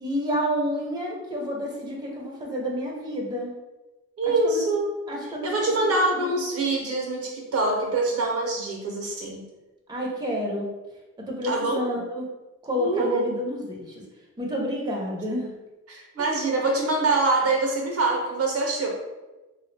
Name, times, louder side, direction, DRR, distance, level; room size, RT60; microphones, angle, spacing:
voice 1, 0.0-3.5 4.4-4.6 5.1-6.4 9.9-10.7 11.3-12.3 12.6-14.0 14.4-15.5 16.2-16.3, equal, 15° right, -2 dB, 0.8 m, -30 dB
voice 2, 4.2-4.9 5.4-9.4 11.4-11.8 12.8-13.3 15.9-18.9, right 2 dB, 50° right, 0 dB, 0.8 m, -24 dB
3.3 x 2.1 x 3.3 m, 1.1 s
cardioid pair, 90°, 30 cm